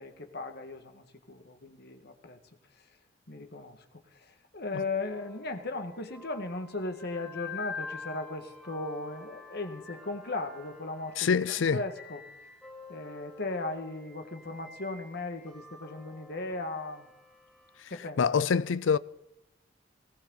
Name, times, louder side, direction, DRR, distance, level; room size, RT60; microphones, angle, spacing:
voice 1, 0.0-2.4 3.3-3.8 4.1-11.4 11.7-12.2 12.9-17.1 17.9-18.2, left 2 dB, 60° left, 1.8 m, -37 dB
sound 1, 5.1-17.8, left 5 dB, 5° left, 2.0 m, -47 dB
voice 2, 11.2-11.8 17.8-17.9 18.2-19.0, left 6 dB, 90° left, 0.5 m, -25 dB
19.0 x 18.0 x 4.0 m
head